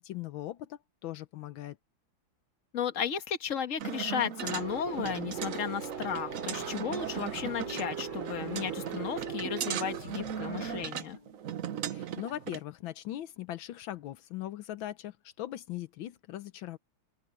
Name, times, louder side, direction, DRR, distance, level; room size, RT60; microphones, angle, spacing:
voice 1, 0.0-1.8 11.9-16.8, left 13 dB, 80° left, 1.5 m, -40 dB
voice 2, 2.7-11.2, left 8 dB, 45° left, 1.6 m, -34 dB
sound 1, 3.8-12.6, right 9 dB, 55° right, 0.9 m, -38 dB
sound 2, 4.4-10.9, right 6 dB, 75° right, 5.3 m, -40 dB
sound 3, 7.5-12.2, left 2 dB, 20° left, 2.4 m, -52 dB
open air
omnidirectional pair, 2.1 m